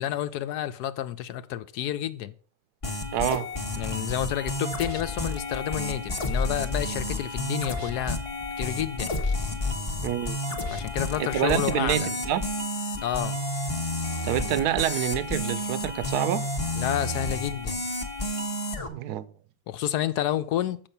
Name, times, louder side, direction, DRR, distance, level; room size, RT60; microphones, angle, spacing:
voice 1, 0.0-2.3 3.8-8.2 8.6-9.1 10.7-12.1 13.0-13.4 16.8-17.9 19.7-20.8, left 11 dB, 80° left, 1.2 m, -30 dB
sound 1, 2.8-18.9, left 1 dB, 25° left, 0.9 m, -31 dB
voice 2, 3.1-3.5 10.0-10.4 11.2-12.5 14.2-16.5 18.9-19.3, right 12 dB, 75° right, 1.2 m, -27 dB
7.2 x 5.6 x 6.8 m
omnidirectional pair, 1.7 m